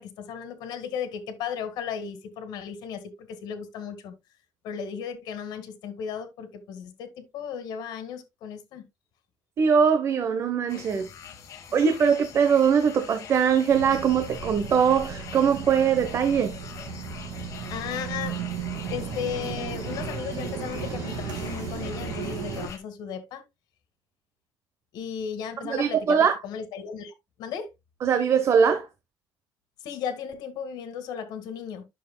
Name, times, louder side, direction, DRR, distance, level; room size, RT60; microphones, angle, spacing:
voice 1, 0.0-4.1 4.6-8.8 17.7-18.4 18.9-23.4 24.9-27.1 27.4-27.7 29.8-31.8, left 7 dB, 80° left, 1.9 m, -35 dB
voice 2, 9.6-11.1 11.7-16.6 25.6-26.4 28.0-28.9, right 7 dB, 40° right, 0.9 m, -22 dB
sound 1, 10.7-22.8, left 7 dB, 50° left, 1.7 m, -43 dB
sound 2, 13.7-22.7, right 6 dB, 75° right, 2.5 m, -35 dB
11.0 x 6.6 x 2.2 m
cardioid pair, 160°, 7 cm